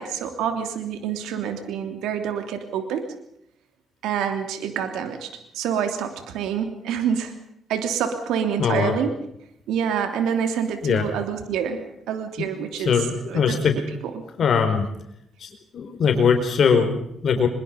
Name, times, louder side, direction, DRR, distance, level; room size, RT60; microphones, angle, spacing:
voice 1, 0.0-3.1 4.0-7.3 7.7-9.1 9.7-13.0 13.3-13.8 14.1-14.2, right 8 dB, 90° right, 7 dB, 3.0 m, -27 dB
voice 2, 8.6-8.9 10.8-11.1 12.4-12.5 12.8-13.8 14.4-14.8 15.4-17.5, left 6 dB, 55° left, 5 dB, 4.6 m, -21 dB
23.5 x 22.5 x 5.3 m, 0.76 s
cardioid pair, 90°, 0 cm